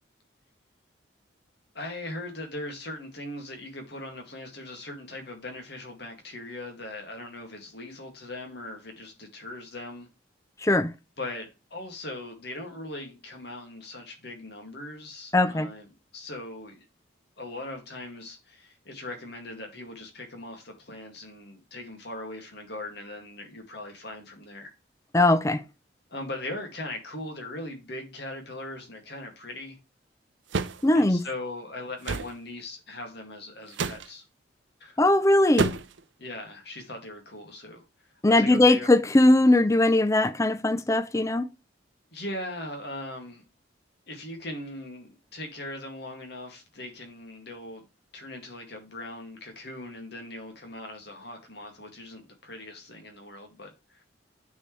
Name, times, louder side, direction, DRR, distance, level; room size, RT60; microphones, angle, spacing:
voice 1, 1.7-10.1 11.2-15.9 16.1-16.9 17.4-24.7 26.1-29.8 30.9-34.2 34.8-35.0 36.2-37.8 38.3-38.9 42.1-43.4 44.1-47.9 48.1-54.0, left 1 dB, 60° left, 2.2 m, -40 dB
voice 2, 10.6-10.9 15.3-15.7 25.1-25.6 30.8-31.2 35.0-35.7 38.2-41.5, left 2 dB, 15° left, 0.5 m, -20 dB
sound 1, 30.5-30.8 32.0-32.3 33.7-34.1 35.6-36.0, right 4 dB, 75° right, 0.6 m, -28 dB
9.4 x 4.7 x 3.2 m
head